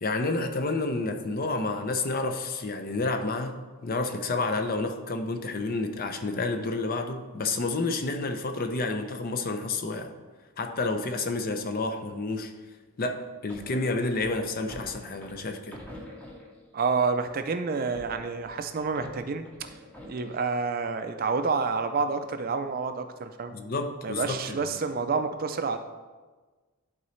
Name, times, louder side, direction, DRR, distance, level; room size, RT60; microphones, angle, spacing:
voice 1, 0.0-10.1 10.6-12.5 13.0-15.8 23.5-24.7, left 3 dB, 40° left, 6 dB, 0.5 m, -30 dB
sound 1, 13.5-16.7 17.2-20.5, left 1 dB, 5° left, 0.8 m, -47 dB
voice 2, 16.7-19.5 20.0-23.5 24.0-25.8, right 4 dB, 40° right, 8 dB, 0.4 m, -28 dB
11.0 x 4.0 x 3.2 m, 1.3 s
head